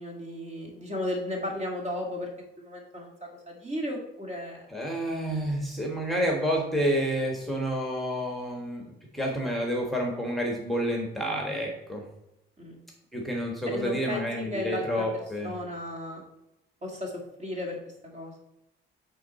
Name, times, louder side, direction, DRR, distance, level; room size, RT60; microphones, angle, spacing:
voice 1, 0.0-4.6 12.6-12.8 13.7-16.2 16.8-17.8 18.0-18.4, left 1 dB, 35° right, 0 dB, 2.1 m, -35 dB
voice 2, 4.7-12.0 13.1-15.6, equal, ahead, 0 dB, 1.4 m, -29 dB
8.5 x 3.9 x 4.2 m, 0.89 s
cardioid pair, 90°, 20 cm